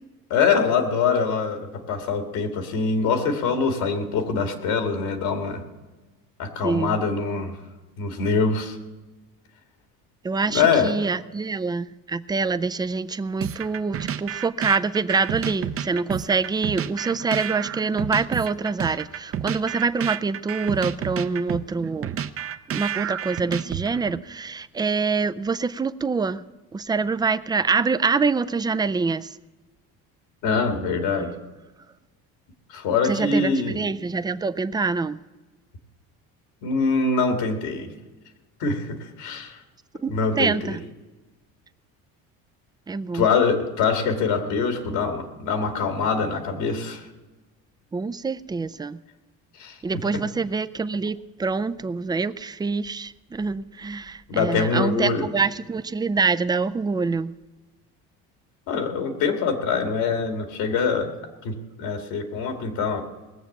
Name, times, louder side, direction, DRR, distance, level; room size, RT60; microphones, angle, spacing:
voice 1, 0.3-5.6 6.4-7.6 8.0-8.8 10.5-10.9 30.4-31.3 32.7-33.8 36.6-37.9 38.6-39.6 40.1-40.8 43.1-47.0 49.6-49.8 54.3-55.3 58.7-61.1 61.4-63.0, left 5 dB, 75° left, 5 dB, 2.3 m, -24 dB
voice 2, 6.6-7.0 10.2-22.1 22.7-26.4 26.7-29.4 33.0-35.2 40.0-40.8 42.9-43.3 47.9-49.0 49.8-57.4, right 4 dB, 10° right, 12 dB, 0.4 m, -25 dB
sound 1, 13.4-24.2, right 9 dB, 40° right, 0.7 m, -30 dB
19.0 x 7.0 x 7.3 m, 1.2 s
supercardioid pair, 100°, 37 cm